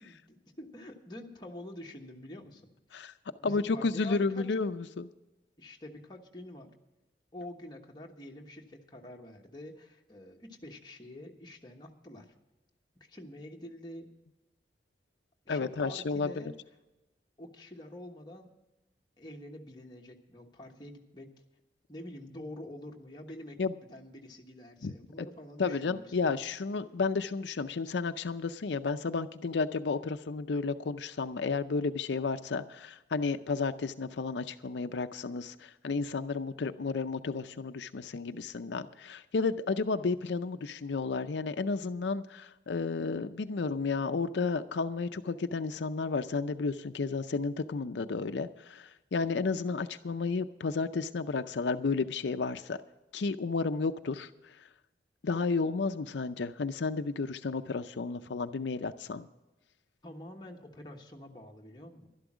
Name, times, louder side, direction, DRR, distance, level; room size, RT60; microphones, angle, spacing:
voice 1, 0.0-2.6 2.9-3.1 3.4-4.5 5.6-6.7 7.3-12.3 13.0-14.1 15.4-16.5 17.4-18.5 19.2-21.3 21.9-23.6 23.9-26.3 58.8-58.9 60.0-62.1, left 1 dB, 25° left, 1 dB, 1.2 m, -47 dB
voice 2, 3.4-5.1 15.5-16.4 23.6-23.7 24.8-25.3 25.6-52.8 53.1-54.7 55.2-59.2, left 4 dB, 80° left, 9 dB, 0.5 m, -32 dB
12.0 x 11.5 x 6.1 m, 1.0 s
head